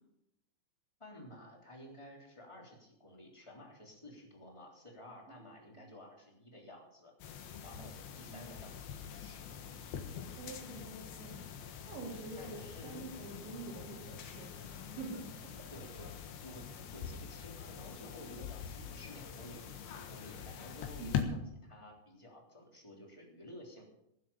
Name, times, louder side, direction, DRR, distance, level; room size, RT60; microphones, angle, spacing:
voice 1, 1.0-7.1 7.6-9.8 12.4-13.2 13.8-14.0 15.7-16.1 16.4-23.8, equal, 10° left, -1 dB, 2.6 m, -53 dB
sound 1, 7.2-21.2, left 8 dB, 65° left, 3.1 m, -44 dB
voice 2, 10.4-15.2 15.6-15.7 21.0-21.1, right 3 dB, 85° right, -4 dB, 5.4 m, -47 dB
19.0 x 7.8 x 7.0 m, 0.81 s
omnidirectional pair, 5.1 m